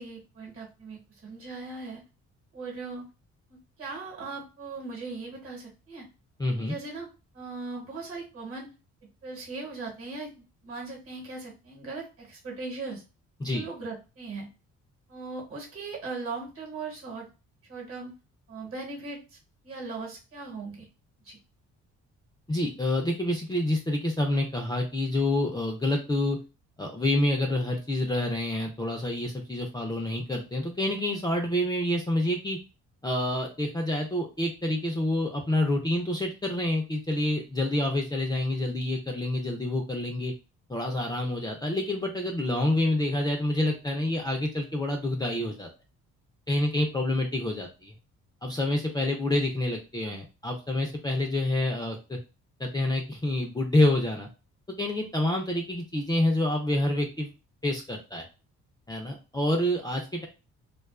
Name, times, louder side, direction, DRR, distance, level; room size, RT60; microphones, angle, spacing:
voice 1, 0.0-2.0 2.5-3.0 3.5-6.1 6.6-7.1 7.3-8.7 9.2-10.3 10.6-13.0 13.5-14.5 15.1-17.3 17.7-18.1 18.5-19.4 19.6-20.9 21.2-21.4, right 3 dB, 45° right, -1 dB, 1.1 m, -39 dB
voice 2, 6.4-6.8 13.4-13.6 22.5-26.4 26.8-32.6 33.0-40.3 40.7-45.7 46.5-47.9 48.4-52.2 52.6-54.3 54.8-57.3 57.6-58.3 58.9-60.3, left 1 dB, 15° left, 1 dB, 0.4 m, -27 dB
2.3 x 2.3 x 2.3 m, 0.31 s
cardioid pair, 90°, 30 cm